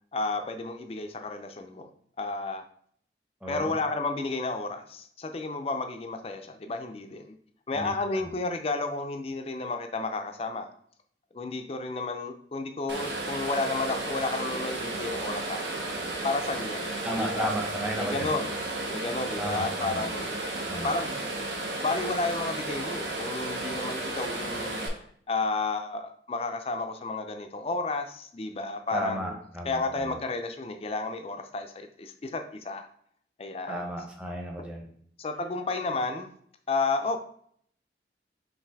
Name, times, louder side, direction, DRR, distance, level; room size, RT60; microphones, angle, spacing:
voice 1, 0.1-1.9 2.2-2.6 3.5-7.4 7.7-10.7 11.3-15.8 16.2-17.5 18.0-18.6 18.9-20.4 20.8-21.3 21.8-29.4 29.6-32.9 33.4-33.8 35.2-36.3 36.7-37.2, left 3 dB, 35° left, 6 dB, 0.4 m, -32 dB
voice 2, 3.4-3.7 7.7-7.9 8.2-8.3 17.0-18.3 19.4-20.0 20.7-20.9 28.9-30.1 33.7-34.9, equal, 5° right, -1 dB, 0.7 m, -33 dB
sound 1, 12.9-24.9, right 2 dB, 75° right, 0.8 m, -33 dB
5.6 x 2.6 x 3.4 m, 0.63 s
head